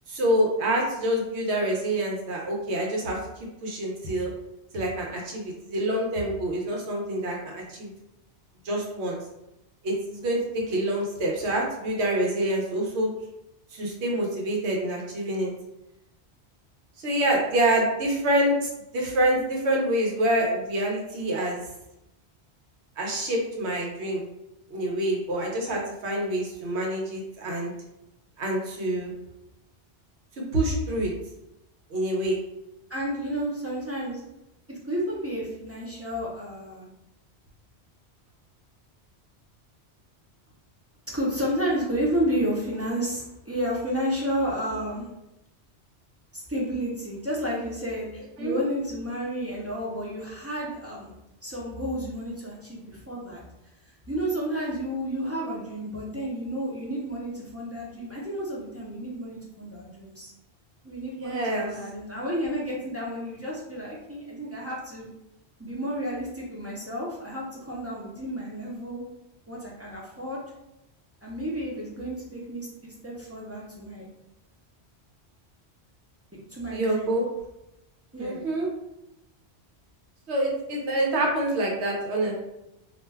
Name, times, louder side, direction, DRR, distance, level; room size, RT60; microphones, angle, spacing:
voice 1, 0.1-3.2 3.6-4.3 4.7-7.9 8.6-9.2 9.8-13.1 13.7-15.5 17.0-21.6 23.0-24.2 24.7-27.7 28.4-29.1 30.5-31.1 31.9-32.4 48.4-48.6 61.2-61.7 76.7-77.2 78.2-78.7 80.3-82.3, right 1 dB, 85° right, -1 dB, 1.0 m, -26 dB
voice 2, 32.9-34.2 34.7-36.9 41.1-45.1 46.3-51.1 51.4-53.4 54.1-60.3 60.8-65.1 65.6-69.0 69.5-70.4 71.2-74.1 76.5-77.1 78.1-78.4, equal, 20° right, -5 dB, 0.4 m, -31 dB
2.5 x 2.2 x 3.2 m, 0.88 s
omnidirectional pair, 1.1 m